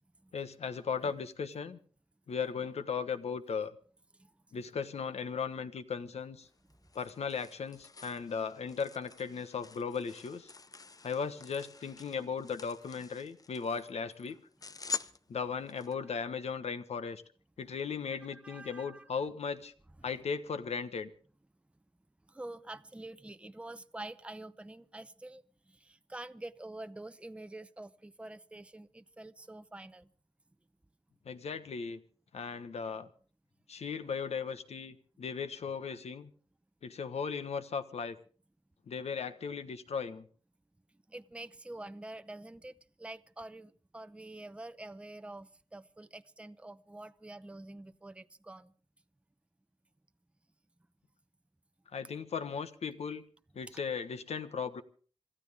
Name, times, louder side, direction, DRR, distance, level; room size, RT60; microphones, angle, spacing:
voice 1, 0.3-1.8 2.3-3.7 4.5-6.5 6.9-10.5 11.0-14.4 15.3-17.2 17.6-19.7 20.0-21.1 31.2-32.0 32.3-33.1 33.7-36.3 36.8-38.2 38.9-40.3 51.9-53.2 53.5-54.8, left 6 dB, 75° left, 1.3 m, -37 dB
sound 1, 6.4-15.9, left 5 dB, 35° left, 0.6 m, -46 dB
voice 2, 18.3-19.1 22.3-30.1 41.1-48.7, right 2 dB, 10° right, 0.6 m, -47 dB
26.5 x 13.5 x 3.6 m
cardioid pair, 75°, 11 cm